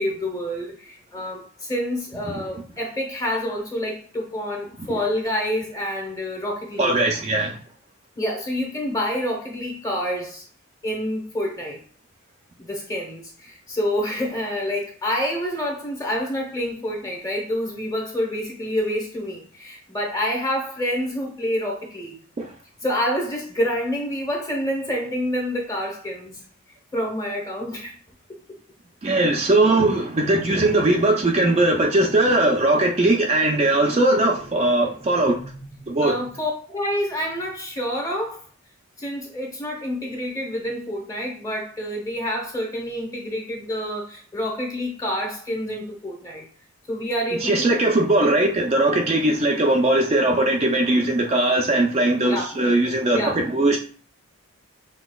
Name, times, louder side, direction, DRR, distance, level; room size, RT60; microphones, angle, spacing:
voice 1, 0.0-6.9 8.2-10.4 10.8-11.8 12.6-22.2 22.8-26.4 26.9-27.9 35.8-38.4 39.0-46.4 46.9-47.7 52.3-52.6 53.1-53.4, equal, 15° left, 0 dB, 0.9 m, -27 dB
voice 2, 6.8-7.6 22.4-22.5 29.0-35.5 35.9-36.2 47.4-53.8, right 2 dB, 30° right, 1 dB, 0.4 m, -20 dB
5.9 x 2.8 x 2.3 m, 0.42 s
head